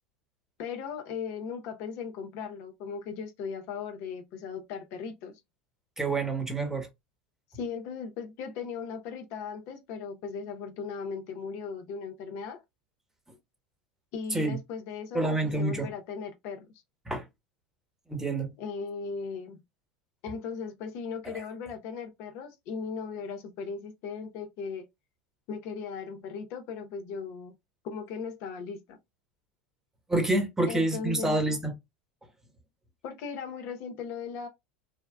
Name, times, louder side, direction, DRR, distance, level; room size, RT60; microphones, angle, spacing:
voice 1, 0.6-5.3 7.5-12.6 14.1-16.7 18.6-19.6 20.2-24.9 25.5-27.5 27.8-29.0 30.7-31.4 33.0-34.5, left 5 dB, 60° left, 0.7 m, -37 dB
voice 2, 6.0-6.9 14.3-14.6 15.1-15.9 17.1-17.3 18.1-18.5 21.3-21.4 30.1-31.7, right 2 dB, 10° right, 1.1 m, -27 dB
3.6 x 2.2 x 2.2 m
hypercardioid pair, 95°, 5 cm